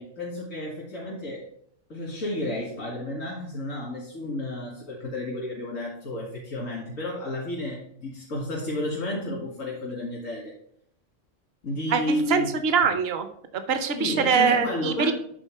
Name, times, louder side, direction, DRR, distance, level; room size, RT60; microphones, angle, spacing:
voice 1, 0.0-1.4 1.9-10.5 11.6-12.5 13.9-15.1, left 1 dB, 90° left, -5 dB, 2.4 m, -31 dB
voice 2, 11.9-13.3 13.5-15.1, right 6 dB, 55° right, 9 dB, 1.0 m, -23 dB
9.1 x 4.0 x 4.5 m, 0.67 s
omnidirectional pair, 1.3 m